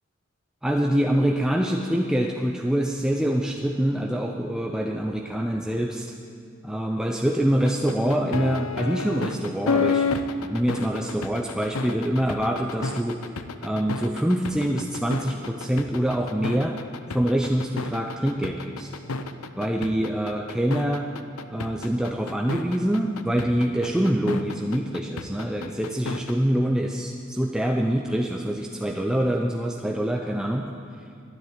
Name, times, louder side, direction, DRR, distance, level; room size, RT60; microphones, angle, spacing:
voice 1, 0.6-6.2 6.6-10.1 10.4-13.3 13.6-16.8 17.1-18.9 19.6-21.1 21.5-30.7, equal, 5° right, 1 dB, 0.5 m, -25 dB
sound 1, 7.7-26.3, left 4 dB, 90° left, 0.7 m, -30 dB
12.5 x 9.8 x 8.9 m, 2.4 s
head